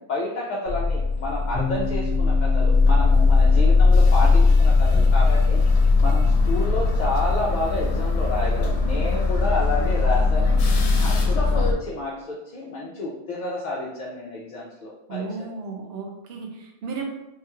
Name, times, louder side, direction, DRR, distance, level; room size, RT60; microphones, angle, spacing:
voice 1, 0.0-10.6 10.9-15.2, left 2 dB, 60° left, -4 dB, 0.5 m, -30 dB
sound 1, 0.7-11.7, left 4 dB, 75° left, 0.9 m, -19 dB
sound 2, 1.5-11.0, left 3 dB, 10° right, 0.7 m, -37 dB
voice 2, 15.1-17.0, right 4 dB, 65° right, 2 dB, 0.8 m, -34 dB
3.3 x 2.3 x 2.9 m, 0.89 s
omnidirectional pair, 1.2 m